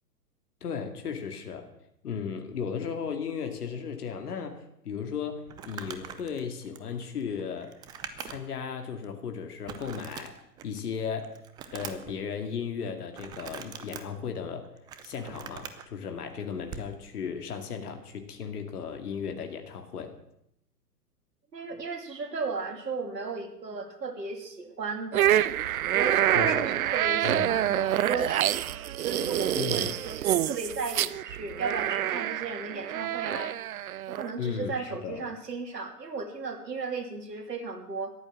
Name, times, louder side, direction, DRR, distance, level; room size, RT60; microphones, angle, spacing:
voice 1, 0.6-1.7 2.0-7.8 8.2-11.4 11.7-14.7 15.0-20.1 26.3-26.7 27.2-27.6 29.6-29.9 34.4-35.2, left 6 dB, 65° left, 6 dB, 2.4 m, -35 dB
Crumpling crinkling, 5.5-8.6 9.0-9.1 9.7-10.8 11.2-12.2 13.1-14.0 14.6-15.9 16.6-16.9, right 8 dB, 10° right, 0.5 m, -42 dB
voice 2, 21.5-25.5 25.9-26.6 26.9-28.6 29.0-33.5 34.1-38.1, right 4 dB, 80° right, 5 dB, 3.2 m, -35 dB
sound 1, 25.1-34.3, right 12 dB, 60° right, 0.7 m, -27 dB
14.0 x 12.0 x 7.4 m, 0.77 s
hypercardioid pair, 120°, 48 cm